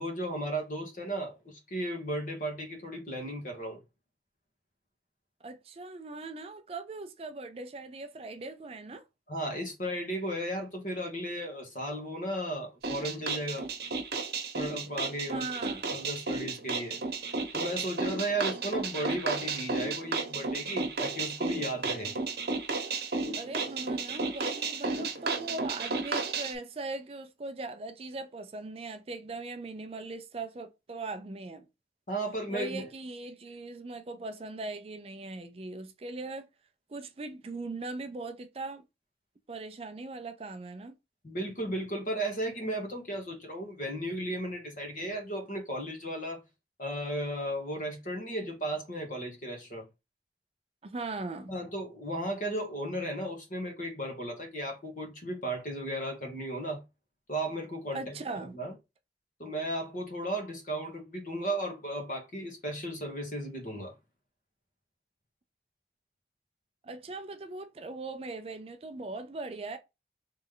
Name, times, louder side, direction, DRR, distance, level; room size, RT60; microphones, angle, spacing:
voice 1, 0.0-3.8 9.3-13.7 14.5-15.5 15.9-17.0 17.5-22.1 32.1-32.8 41.2-46.4 46.8-49.8 51.5-56.8 57.3-58.0 58.5-58.7 59.4-63.9, right 1 dB, 45° left, 1.3 m, -35 dB
voice 2, 5.4-9.0 15.3-15.9 23.3-31.6 32.5-36.5 36.9-38.8 39.5-41.0 50.8-51.5 57.9-58.6 66.8-69.8, right 3 dB, 35° right, 0.4 m, -40 dB
sound 1, 12.8-26.5, right 4 dB, 65° right, 1.0 m, -33 dB
3.3 x 3.1 x 3.7 m
head